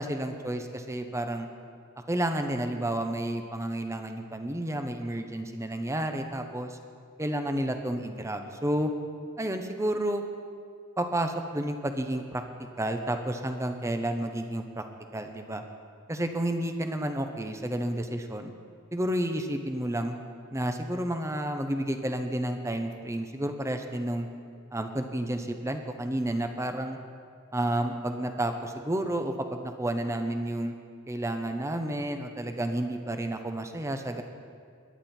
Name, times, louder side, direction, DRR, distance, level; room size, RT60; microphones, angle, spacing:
voice 1, 0.0-1.5 2.1-6.8 7.2-8.9 9.4-10.2 11.0-12.4 12.8-14.8 15.1-15.6 16.1-18.5 18.9-20.2 20.5-24.3 24.7-27.0 27.5-30.7 31.1-34.2, right 1 dB, 15° right, 6 dB, 0.9 m, -31 dB
22.0 x 11.0 x 4.4 m, 2.2 s
head